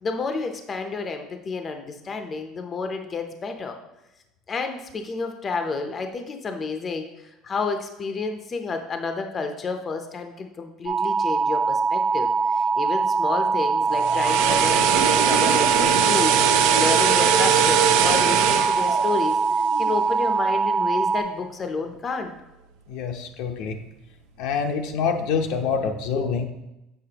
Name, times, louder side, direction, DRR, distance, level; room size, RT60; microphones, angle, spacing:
voice 1, 0.0-3.8 4.5-16.4 16.7-19.4 19.8-22.3 26.2-26.5, left 4 dB, 25° left, 5 dB, 0.6 m, -30 dB
sound 1, 10.9-21.2, right 4 dB, 30° right, 1.1 m, -23 dB
sound 2, 13.8-20.0 20.3-20.5, right 9 dB, 85° right, 0.6 m, -22 dB
voice 2, 22.9-23.8 24.4-26.5, left 6 dB, 70° left, 5 dB, 0.7 m, -26 dB
7.3 x 6.7 x 2.9 m, 0.94 s
cardioid pair, 150°, 0 cm